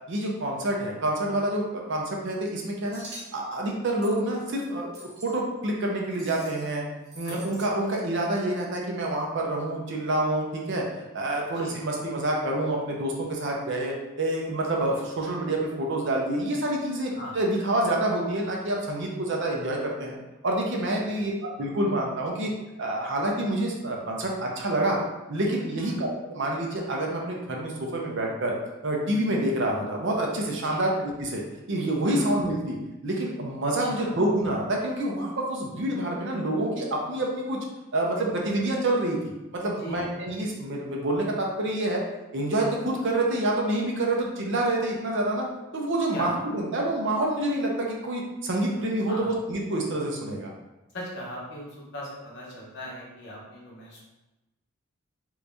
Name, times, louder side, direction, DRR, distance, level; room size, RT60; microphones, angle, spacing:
voice 1, 0.1-3.0 3.3-4.9 5.2-6.8 7.1-10.8 11.1-20.2 20.4-22.5 22.8-25.0 25.3-28.5 28.8-31.4 31.7-32.8 33.0-37.6 37.9-42.0 42.3-45.5 45.7-50.5, right 1 dB, 55° right, -1 dB, 0.6 m, -27 dB
sound 1, 2.9-3.3 4.0-4.2 4.9-5.4 6.1-6.7 7.0-7.7, right 1 dB, 70° right, 1.1 m, -45 dB
voice 2, 7.2-7.6 11.5-11.7 17.1-17.4 21.0-21.1 30.6-30.9 32.1-32.3 33.8-34.2 39.7-40.1 46.1-46.3 49.1-49.3 50.9-54.0, equal, 50° left, -4 dB, 0.9 m, -39 dB
3.1 x 2.6 x 3.4 m, 1.0 s
head